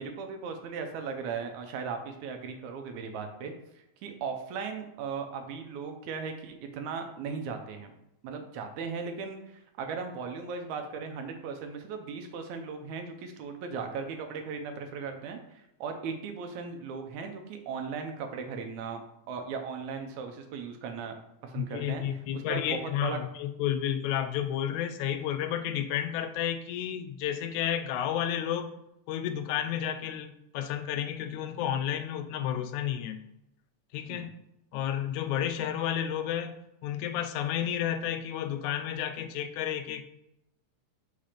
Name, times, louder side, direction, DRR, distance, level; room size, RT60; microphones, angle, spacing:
voice 1, 0.0-3.5 4.0-7.9 8.2-21.2 21.4-22.0 22.3-23.2 34.1-34.3, right 5 dB, 80° right, 5 dB, 2.2 m, -37 dB
voice 2, 21.6-28.7 29.1-33.2 33.9-34.3 34.7-36.6 36.8-40.0, left 10 dB, 85° left, 9 dB, 2.0 m, -31 dB
5.9 x 3.9 x 5.0 m, 0.86 s
omnidirectional pair, 3.3 m